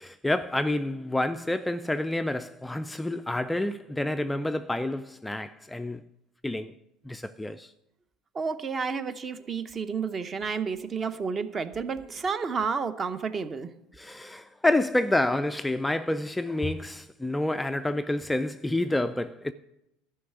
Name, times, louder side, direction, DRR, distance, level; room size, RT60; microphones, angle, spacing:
voice 1, 0.0-6.0 6.4-6.7 7.1-7.7 13.9-19.5, left 1 dB, 5° left, 0.3 m, -28 dB
voice 2, 8.3-13.7, right 5 dB, 30° right, 0.7 m, -31 dB
11.5 x 5.6 x 8.1 m
supercardioid pair, 110°, 0 cm